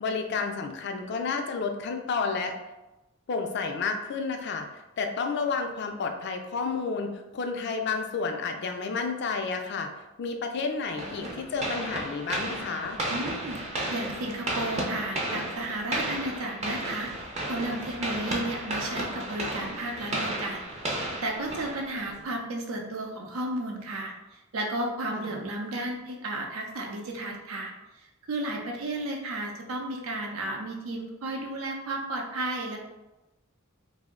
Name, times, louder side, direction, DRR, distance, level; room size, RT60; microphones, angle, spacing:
voice 1, 0.0-2.5 3.3-9.9 10.2-13.0 25.1-25.3, left 4 dB, 55° left, 5 dB, 0.4 m, -31 dB
sound 1, 11.0-22.3, right 1 dB, 30° right, 0.5 m, -33 dB
voice 2, 13.1-13.6 13.9-32.8, right 1 dB, 85° right, 1 dB, 0.6 m, -33 dB
2.5 x 2.0 x 3.6 m, 1.0 s
head